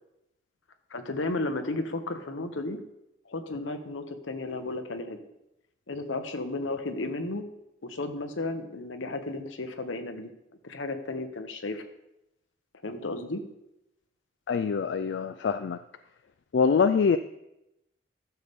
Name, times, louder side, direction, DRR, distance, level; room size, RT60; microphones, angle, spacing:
voice 1, 0.9-2.8 3.3-5.2 5.9-7.5 7.8-10.3 10.6-11.8 12.8-13.4, left 2 dB, 90° left, 7 dB, 1.0 m, -33 dB
voice 2, 14.5-15.8 16.5-17.2, left 5 dB, 70° left, 10 dB, 0.3 m, -24 dB
13.5 x 6.8 x 3.6 m, 0.86 s
head